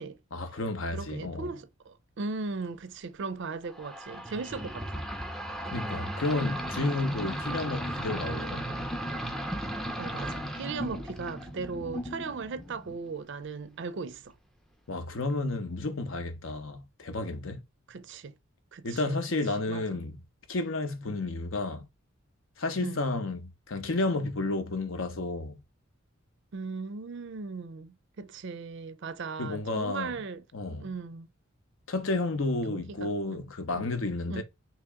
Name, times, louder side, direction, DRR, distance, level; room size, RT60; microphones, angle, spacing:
voice 1, 0.3-1.5 5.7-8.7 14.9-17.6 18.8-20.2 20.5-21.9 22.6-25.6 29.4-30.1 30.5-30.9 31.9-34.4, left 2 dB, 65° left, 0.7 m, -31 dB
voice 2, 0.9-5.1 10.0-14.3 17.9-18.3 18.7-19.2 19.7-20.0 21.1-21.2 22.8-23.0 26.5-30.4 30.7-31.3 32.6-33.4 33.7-33.9 34.3-34.4, right 4 dB, 55° right, 0.4 m, -38 dB
sound 1, 3.7-13.1, equal, ahead, 0.4 m, -36 dB
2.9 x 2.8 x 3.4 m
head